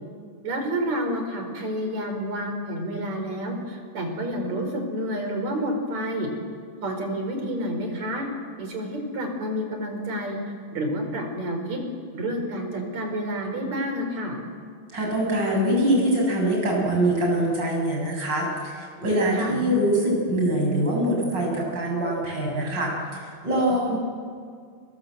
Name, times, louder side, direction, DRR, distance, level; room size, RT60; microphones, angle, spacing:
voice 1, 0.4-6.3 6.8-8.3 8.6-10.4 10.7-11.8 12.1-14.4 19.3-19.6 23.7-23.8, equal, 65° right, 4 dB, 5.4 m, -29 dB
voice 2, 14.9-24.0, right 1 dB, 35° right, -2 dB, 8.4 m, -24 dB
30.0 x 23.5 x 7.9 m, 2.1 s
omnidirectional pair, 3.5 m